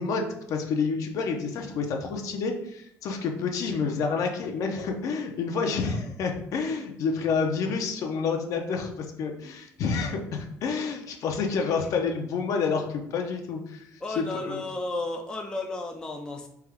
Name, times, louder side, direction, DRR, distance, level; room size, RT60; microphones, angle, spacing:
voice 1, 0.0-13.8 14.2-14.6, left 5 dB, 55° left, 3 dB, 0.7 m, -29 dB
voice 2, 14.0-16.5, left 2 dB, 10° left, 3 dB, 0.4 m, -33 dB
3.5 x 3.4 x 3.5 m, 0.72 s
cardioid pair, 130°, 7 cm